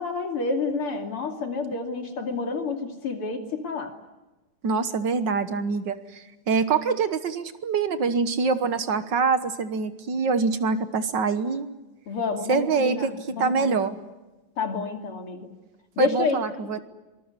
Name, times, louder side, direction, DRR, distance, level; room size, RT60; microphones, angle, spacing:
voice 1, 0.0-3.9 12.1-13.8 14.6-15.5 16.0-16.4, left 3 dB, 80° left, 4 dB, 3.6 m, -29 dB
voice 2, 4.6-11.7 12.5-13.9 16.0-16.8, right 5 dB, 60° right, 11 dB, 1.8 m, -25 dB
25.5 x 20.0 x 9.7 m, 1.1 s
omnidirectional pair, 2.4 m